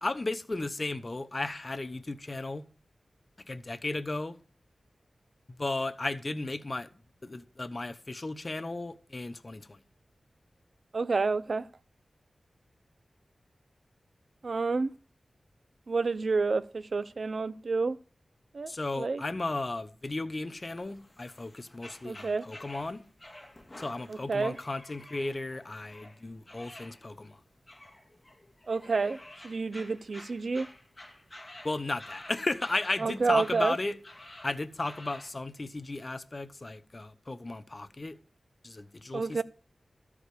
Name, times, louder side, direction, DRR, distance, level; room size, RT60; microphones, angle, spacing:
voice 1, 0.0-2.6 3.4-4.4 5.5-6.9 7.2-9.8 18.7-23.0 23.8-27.4 31.6-34.0 34.4-38.2 38.6-39.4, left 2 dB, 35° left, 0.9 m, -35 dB
voice 2, 10.9-11.6 14.4-14.9 15.9-18.0 18.5-19.2 22.1-22.4 24.3-24.5 28.7-30.7 33.0-33.7 39.1-39.4, right 4 dB, 60° right, 0.5 m, -29 dB
sound 1, 20.6-35.3, left 1 dB, 15° left, 1.9 m, -51 dB
13.5 x 4.9 x 8.4 m
wide cardioid pair, 95°, 0 cm